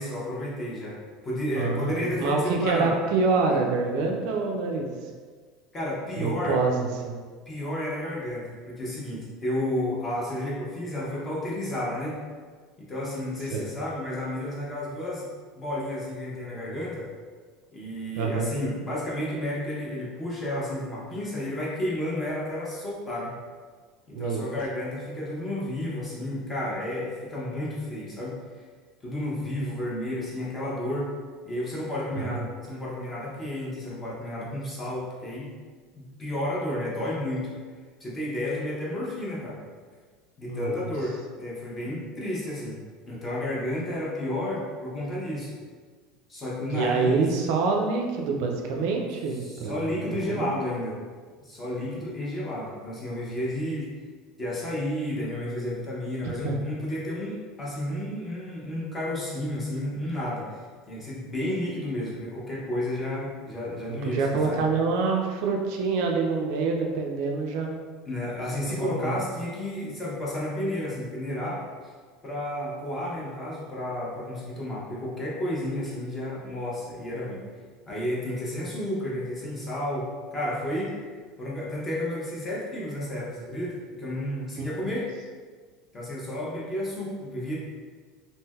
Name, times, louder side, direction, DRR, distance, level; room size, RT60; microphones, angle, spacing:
voice 1, 0.0-3.0 3.5-3.6 5.7-6.6 7.5-12.2 12.8-15.3 15.5-17.1 17.7-23.3 24.1-28.4 29.0-31.1 31.5-35.5 35.9-37.5 38.0-39.6 40.4-42.8 43.1-45.6 46.3-47.3 49.3-51.0 51.4-53.9 54.4-64.6 68.1-71.9 72.2-77.4 77.9-81.0 81.4-85.1 85.9-87.6, left 1 dB, 15° left, -5 dB, 0.5 m, -32 dB
voice 2, 1.5-4.9 6.2-7.2 13.5-13.7 18.2-18.5 24.1-24.4 32.1-32.4 40.5-40.9 46.7-49.9 50.3-50.5 56.4-56.6 64.0-67.7 68.6-69.2 84.6-84.8, right 4 dB, 55° right, 1 dB, 0.3 m, -26 dB
3.2 x 2.6 x 2.2 m, 1.5 s
cardioid pair, 175°, 0 cm